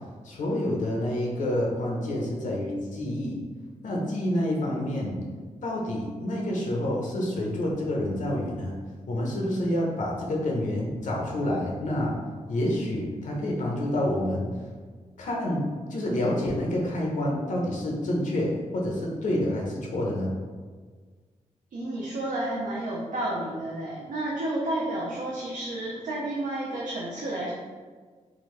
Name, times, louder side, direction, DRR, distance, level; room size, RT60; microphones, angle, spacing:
voice 1, 0.2-3.4 3.8-5.2 5.6-8.8 9.1-12.1 12.5-14.5 15.2-20.3, left 1 dB, 80° left, -2 dB, 0.8 m, -28 dB
voice 2, 21.7-27.5, right 1 dB, 85° right, -5 dB, 0.6 m, -31 dB
3.7 x 2.5 x 3.2 m, 1.5 s
wide cardioid pair, 150°, 13 cm